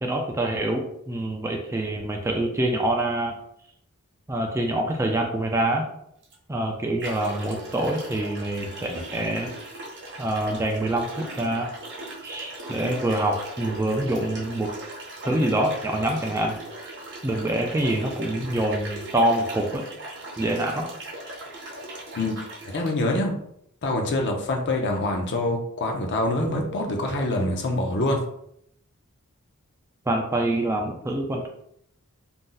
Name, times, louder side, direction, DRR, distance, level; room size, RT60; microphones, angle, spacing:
voice 1, 0.0-3.4 4.3-5.9 6.5-9.5 10.2-11.7 12.2-14.7 15.3-16.6 17.2-19.9 20.4-20.9 30.1-31.5, right 1 dB, 15° right, 2 dB, 0.3 m, -25 dB
sound 1, 6.2-6.3 7.0-22.9, right 2 dB, 55° right, 0.8 m, -39 dB
voice 2, 22.6-23.3 23.8-28.2, left 1 dB, 55° left, 2 dB, 0.6 m, -25 dB
2.6 x 2.1 x 3.7 m, 0.72 s
head